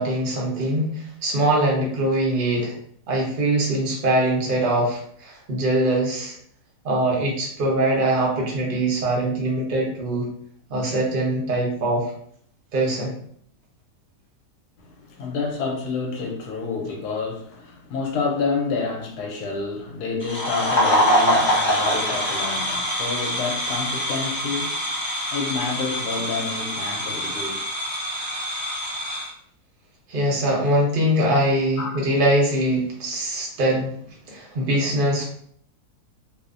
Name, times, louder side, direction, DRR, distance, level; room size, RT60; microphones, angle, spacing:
voice 1, 0.0-2.7 3.1-6.4 6.8-10.3 10.7-12.1 12.7-13.2 30.1-34.0 34.3-35.2, right 1 dB, 50° right, 0.7 m, -22 dB
voice 2, 14.8-24.9 25.3-27.6 31.8-32.1, left 4 dB, 80° left, 1.1 m, -29 dB
sound 1, 20.2-29.3, equal, 25° left, 0.7 m, -24 dB
2.8 x 2.0 x 2.4 m
omnidirectional pair, 1.7 m